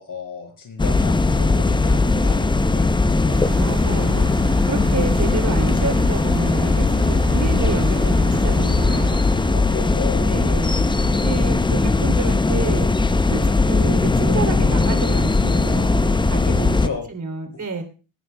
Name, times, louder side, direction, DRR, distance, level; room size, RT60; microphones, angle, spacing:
voice 1, 0.0-3.4 9.5-10.4 16.8-17.0 17.5-17.6, left 5 dB, 40° left, 3 dB, 6.0 m, -33 dB
sound 1, 0.8-16.9, left 3 dB, 10° left, 0.6 m, -19 dB
sound 2, 3.3-9.8, right 8 dB, 75° right, 4.9 m, -36 dB
voice 2, 3.6-4.3 4.7-9.1 10.3-10.8 11.1-12.9 13.3-16.8 17.1-17.8, right 4 dB, 35° right, 7 dB, 2.9 m, -29 dB
21.0 x 10.0 x 2.2 m, 0.34 s
hypercardioid pair, 55°, 49 cm